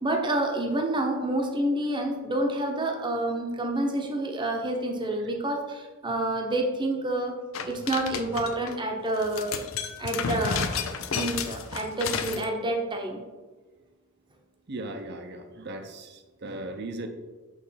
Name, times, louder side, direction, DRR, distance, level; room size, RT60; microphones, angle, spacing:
voice 1, 0.0-7.3 7.7-9.6 10.0-10.7 11.1-13.2, right 1 dB, 20° right, 1 dB, 0.8 m, -28 dB
sound 1, 7.5-8.7 9.2-12.5, left 6 dB, 70° left, 0.5 m, -32 dB
voice 2, 14.7-17.1, right 2 dB, 50° right, 6 dB, 0.7 m, -37 dB
6.2 x 3.2 x 5.6 m, 1.3 s
head